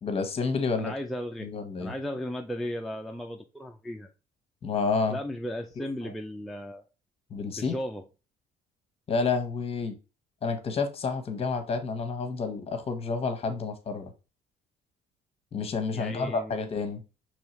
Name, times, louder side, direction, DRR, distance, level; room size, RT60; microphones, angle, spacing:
voice 1, 0.0-0.9 1.4-1.9 4.6-5.2 5.8-5.9 7.3-7.7 9.1-10.0 10.4-14.1 15.5-17.0, left 4 dB, 35° left, 1.0 m, -29 dB
voice 2, 0.8-1.5 1.8-4.1 5.1-6.8 7.5-8.0 15.9-16.7, equal, ahead, 0.4 m, -35 dB
5.5 x 3.1 x 3.0 m
cardioid pair, 110°, 17 cm